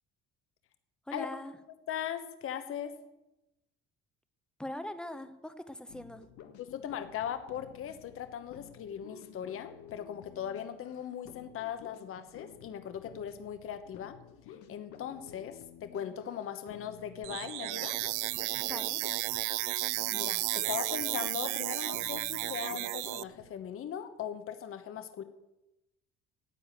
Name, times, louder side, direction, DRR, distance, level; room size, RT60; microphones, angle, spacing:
voice 1, 1.1-1.6 4.6-6.2 18.6-19.0, left 1 dB, 5° left, 10 dB, 0.9 m, -41 dB
voice 2, 1.9-3.0 6.6-14.2 14.5-18.0 20.1-25.2, left 9 dB, 45° left, 9 dB, 1.1 m, -39 dB
sound 1, 5.9-23.6, left 8 dB, 75° left, 1.7 m, -52 dB
sound 2, 17.2-23.2, right 21 dB, 80° right, 0.5 m, -33 dB
10.0 x 8.4 x 9.1 m, 0.94 s
cardioid pair, 130°, 31 cm